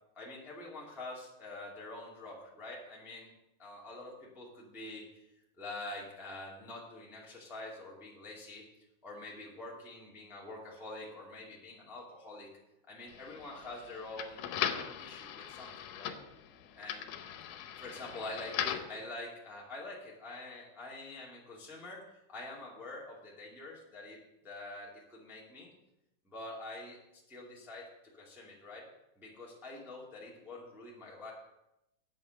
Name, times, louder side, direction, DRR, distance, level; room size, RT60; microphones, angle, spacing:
voice 1, 0.1-3.3 3.6-5.0 5.6-8.6 9.0-12.5 12.9-16.1 16.8-17.1 17.8-24.2 24.4-25.7 26.2-27.9 28.2-28.9 29.2-31.3, left 2 dB, ahead, -4 dB, 1.7 m, -46 dB
sound 1, 13.1-19.0, left 9 dB, 90° left, 2.3 m, -39 dB
8.6 x 7.8 x 6.4 m, 0.89 s
omnidirectional pair, 3.6 m